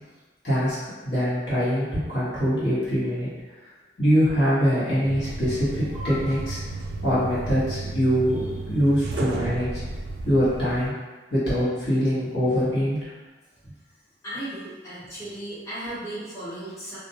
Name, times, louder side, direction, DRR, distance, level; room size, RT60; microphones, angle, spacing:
voice 1, 0.4-0.8 1.0-3.3 4.0-6.6 7.0-9.7 10.2-10.9 11.3-13.1, equal, 65° left, -11 dB, 1.1 m, -23 dB
sound 1, 5.0-10.9, right 2 dB, 65° right, 0.3 m, -33 dB
voice 2, 14.2-17.0, right 1 dB, 15° left, -12 dB, 0.8 m, -35 dB
2.5 x 2.2 x 2.7 m, 1.2 s
head